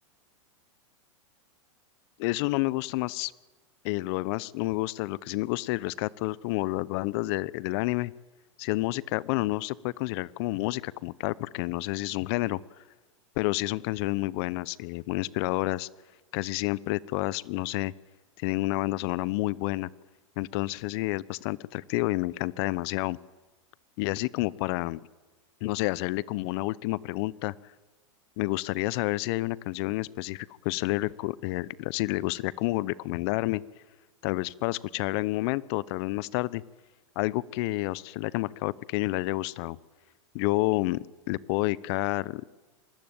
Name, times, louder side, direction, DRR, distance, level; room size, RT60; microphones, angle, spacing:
voice 1, 2.2-3.3 3.8-8.1 8.6-12.6 13.4-15.9 16.3-17.9 18.4-19.9 20.4-23.2 24.0-25.0 25.6-27.5 28.4-33.6 34.2-36.6 37.2-39.8 40.3-42.4, left 20 dB, 55° left, 21 dB, 0.9 m, -29 dB
24.5 x 20.0 x 9.0 m, 1.3 s
hypercardioid pair, 110°, 17 cm